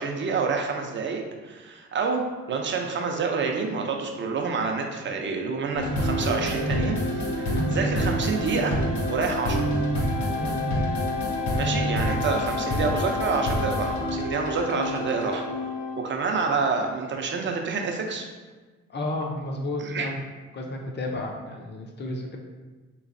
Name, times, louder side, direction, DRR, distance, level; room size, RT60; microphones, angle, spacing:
voice 1, 0.0-2.2 2.5-8.8 9.1-9.6 11.5-15.4 16.0-18.2 19.8-20.1, right 4 dB, 40° right, 2 dB, 0.5 m, -28 dB
sound 1, 5.7-16.2, left 1 dB, 75° left, 0.8 m, -27 dB
voice 2, 10.3-10.7 18.9-20.2 20.5-22.4, left 2 dB, 35° left, 1 dB, 0.6 m, -32 dB
3.2 x 3.0 x 2.6 m, 1.3 s
cardioid pair, 90°, 30 cm